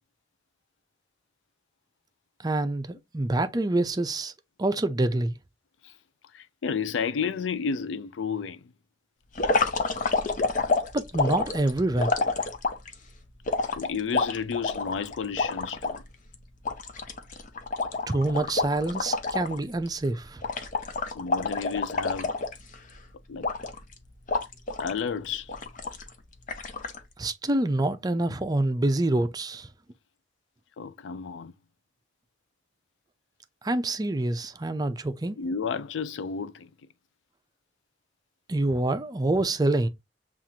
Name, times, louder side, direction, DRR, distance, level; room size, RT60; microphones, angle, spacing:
voice 1, 2.4-4.3 4.6-5.3 10.9-12.1 18.1-20.4 27.2-29.7 33.6-35.4 38.5-39.9, right 2 dB, 20° right, 0.5 m, -26 dB
voice 2, 6.3-8.6 13.7-16.0 21.1-22.4 23.3-23.5 24.8-25.5 30.8-31.5 35.4-36.7, left 6 dB, 90° left, 0.4 m, -31 dB
sound 1, 9.4-12.9 13.5-16.0 16.3-16.4 16.7-19.6 19.9-20.1 20.4-22.9 23.4-23.9 24.3-25.0 25.5-26.1 26.5-27.0, left 3 dB, 45° left, 0.7 m, -28 dB
7.4 x 2.5 x 2.8 m
head